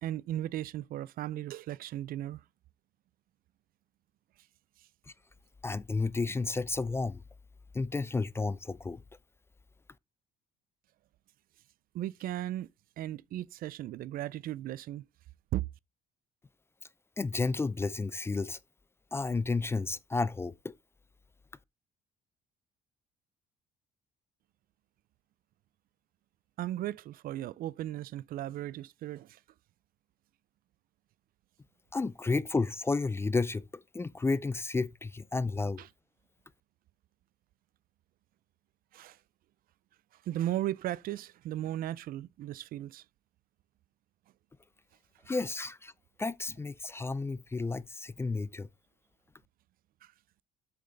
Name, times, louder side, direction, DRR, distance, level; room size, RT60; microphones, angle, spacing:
voice 1, 0.0-2.4 11.9-12.7 13.0-15.1 15.5-15.6 26.6-29.4 35.8-35.9 38.9-39.2 40.3-43.0 50.0-50.1, right 13 dB, 60° right, 0.4 m, -36 dB
voice 2, 5.6-7.2 7.7-9.0 17.2-18.6 19.1-20.7 31.9-33.7 33.9-35.8 45.3-45.9 46.2-48.7, left 3 dB, 15° left, 0.3 m, -32 dB
7.7 x 5.4 x 3.8 m
cardioid pair, 110°, 17 cm